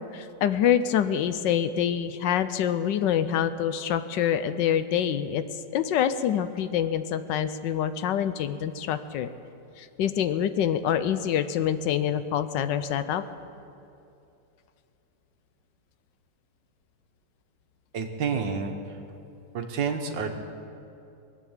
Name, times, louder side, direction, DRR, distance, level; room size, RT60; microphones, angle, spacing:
voice 1, 0.0-5.4 5.7-9.3 9.8-13.2, left 9 dB, 75° left, 12 dB, 1.3 m, -26 dB
voice 2, 17.9-19.0 19.5-20.3, right 5 dB, 75° right, 4 dB, 1.9 m, -29 dB
22.0 x 8.4 x 7.3 m, 2.7 s
omnidirectional pair, 2.0 m